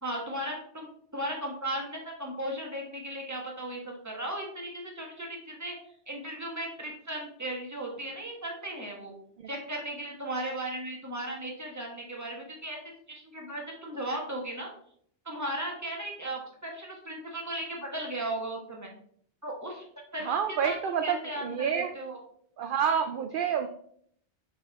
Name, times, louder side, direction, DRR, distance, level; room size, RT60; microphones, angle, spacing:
voice 1, 0.0-5.7 6.1-9.1 9.5-12.8 13.1-14.7 15.2-18.9 19.4-19.8 20.1-20.3 20.6-20.8 21.0-22.2, right 1 dB, 15° right, -1 dB, 1.5 m, -36 dB
voice 2, 20.2-21.9 22.6-23.7, right 7 dB, 60° right, 6 dB, 0.6 m, -28 dB
6.7 x 4.9 x 3.6 m, 0.64 s
omnidirectional pair, 1.2 m